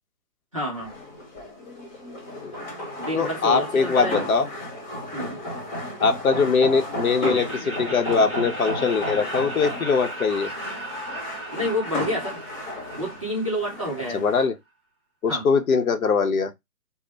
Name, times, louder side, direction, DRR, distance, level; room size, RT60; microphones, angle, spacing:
voice 1, 0.5-1.0 3.0-4.3 5.1-5.4 11.5-12.4 13.0-14.2 15.3-15.5, equal, 20° right, 0.5 m, -29 dB
sound 1, 0.7-14.5, left 1 dB, 30° left, 1.0 m, -33 dB
voice 2, 3.1-4.5 6.0-10.5 14.1-14.6 15.2-16.5, left 5 dB, 65° left, 0.8 m, -22 dB
Laughter, 7.2-14.1, right 2 dB, 5° right, 1.5 m, -37 dB
3.2 x 2.1 x 3.9 m
hypercardioid pair, 160°, 46 cm